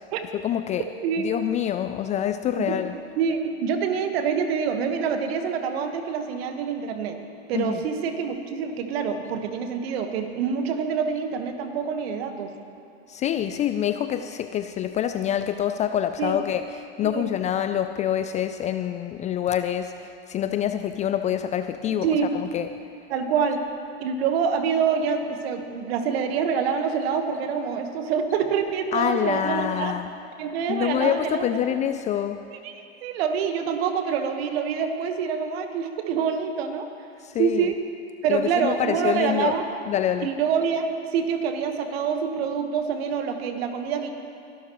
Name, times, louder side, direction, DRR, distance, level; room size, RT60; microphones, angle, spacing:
voice 1, 0.3-0.8 1.2-3.0 7.5-7.8 13.1-22.1 22.3-22.7 28.9-30.1 30.7-32.4 37.2-37.7 38.3-39.6 39.9-40.3, left 10 dB, 20° left, 9 dB, 0.3 m, -26 dB
voice 2, 3.2-7.2 7.5-12.5 16.2-16.4 17.0-17.3 22.0-22.4 23.1-23.6 24.0-29.9 30.4-31.5 32.6-32.7 33.0-36.9 37.4-37.8 38.2-39.6 40.2-44.1, right 6 dB, 65° right, 6 dB, 1.4 m, -26 dB
22.5 x 12.0 x 3.1 m, 2.5 s
hypercardioid pair, 95°, 33 cm